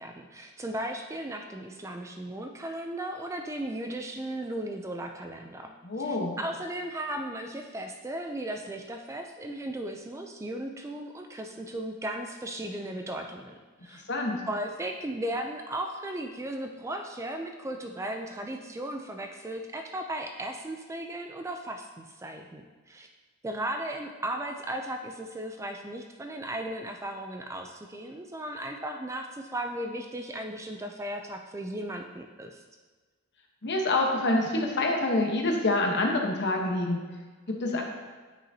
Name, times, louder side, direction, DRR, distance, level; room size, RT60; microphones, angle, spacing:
voice 1, 0.0-13.5 13.8-14.0 14.5-23.1 23.4-32.6, right 1 dB, 15° right, 4 dB, 0.3 m, -36 dB
voice 2, 5.8-6.3 14.1-14.4 33.6-37.0 37.5-37.8, left 2 dB, 55° left, 1 dB, 1.0 m, -26 dB
9.9 x 5.8 x 2.7 m, 1.4 s
head